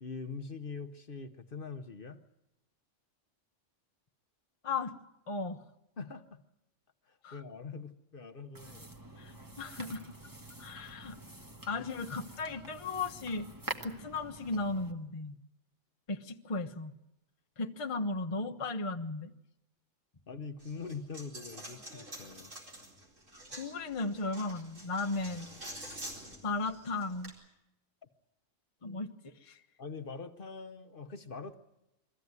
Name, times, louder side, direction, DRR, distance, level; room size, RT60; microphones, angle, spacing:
voice 1, 0.0-2.2 6.0-6.4 7.1-8.9 20.3-22.5 28.8-29.0 29.8-31.5, left 4 dB, 50° left, 7 dB, 1.1 m, -43 dB
voice 2, 4.6-4.9 5.3-5.6 7.2-7.4 9.2-10.0 10.6-11.2 11.7-13.5 13.8-15.4 16.1-16.9 17.6-19.3 23.6-25.5 26.4-27.3 28.8-29.6, left 3 dB, 30° left, 4 dB, 0.9 m, -36 dB
sound 1, 8.5-14.9, right 1 dB, 15° right, 1.4 m, -46 dB
Coin (dropping), 20.6-27.3, right 1 dB, 80° right, 4.7 m, -48 dB
23.0 x 14.5 x 9.6 m, 0.88 s
omnidirectional pair, 1.3 m